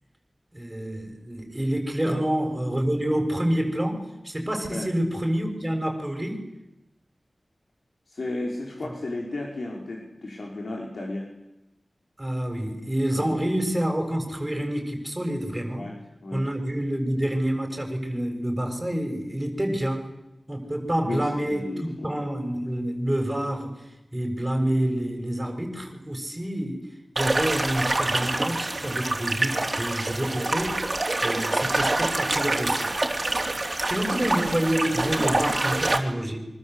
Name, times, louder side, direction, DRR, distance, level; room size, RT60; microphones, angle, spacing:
voice 1, 0.5-6.4 12.2-15.8 16.3-20.1 20.5-23.8 24.1-26.8 27.1-30.8 31.2-33.0 33.8-36.5, right 1 dB, 15° right, 3 dB, 7.1 m, -28 dB
voice 2, 8.1-11.3 13.1-13.5 15.8-16.4 21.0-22.1, left 2 dB, 75° left, -1 dB, 5.4 m, -34 dB
sound 1, 27.2-36.0, right 2 dB, 40° right, 3.7 m, -26 dB
26.0 x 24.5 x 8.3 m, 0.92 s
wide cardioid pair, 75°, 0 cm